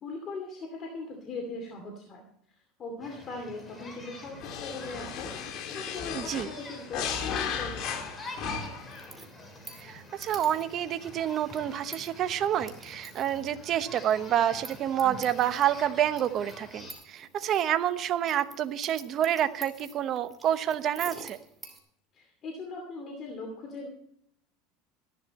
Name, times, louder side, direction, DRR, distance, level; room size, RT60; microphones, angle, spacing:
voice 1, 0.0-2.2 2.5-8.1 22.1-23.9, left 3 dB, 30° left, 1 dB, 2.6 m, -40 dB
sound 1, 3.0-16.9, left 1 dB, 15° left, 3.3 m, -46 dB
sound 2, 4.4-9.0, left 7 dB, 50° left, 2.2 m, -35 dB
voice 2, 6.1-6.5 9.8-21.4, right 10 dB, 40° right, 11 dB, 0.9 m, -28 dB
sound 3, 8.9-21.8, right 3 dB, 10° right, 2.5 m, -49 dB
14.0 x 11.5 x 4.3 m, 0.70 s
supercardioid pair, 140°, 0 cm